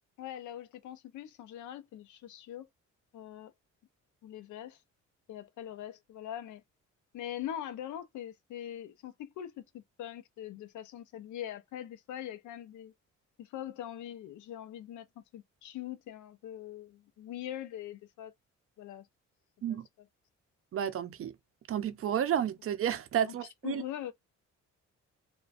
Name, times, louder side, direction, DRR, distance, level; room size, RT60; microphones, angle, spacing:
voice 1, 0.2-2.7 3.1-3.5 4.2-4.8 5.3-6.6 7.1-12.9 13.4-18.3 18.8-19.1 19.7-19.8 23.2-24.1, left 11 dB, 75° left, 0.5 m, -42 dB
voice 2, 20.7-21.3 21.7-23.8, right 9 dB, 50° right, 0.5 m, -31 dB
2.4 x 2.2 x 2.3 m
cardioid pair, 90°, 30 cm